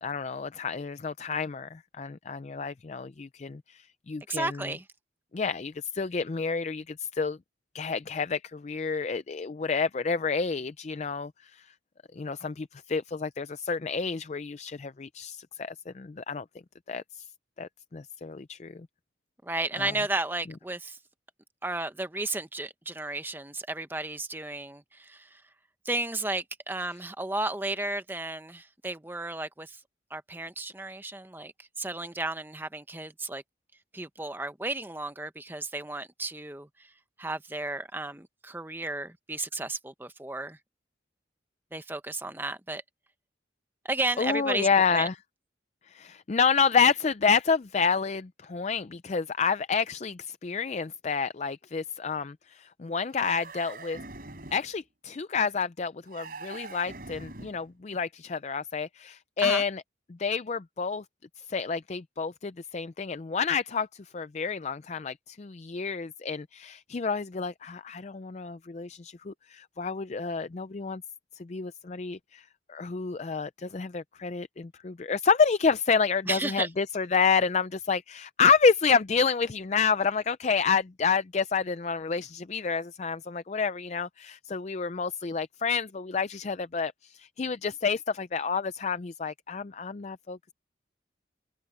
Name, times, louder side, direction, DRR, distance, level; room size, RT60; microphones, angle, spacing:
voice 1, 0.0-4.7 5.3-7.4 7.7-11.7 12.1-16.4 16.9-17.3 17.6-18.9 19.8-19.9 44.2-45.1 45.9-54.0 54.5-59.8 60.1-61.0 61.5-71.0 71.3-90.5, left 5 dB, 35° left, 0.4 m, -29 dB
voice 2, 4.3-4.8 19.4-21.0 21.6-25.4 25.8-29.8 30.1-33.4 33.9-36.9 37.2-40.6 41.7-42.8 43.8-45.1 59.4-59.6 76.3-76.7, right 2 dB, 10° right, 0.9 m, -33 dB
sound 1, 53.1-54.7 56.1-57.7, right 3 dB, 50° right, 4.2 m, -43 dB
head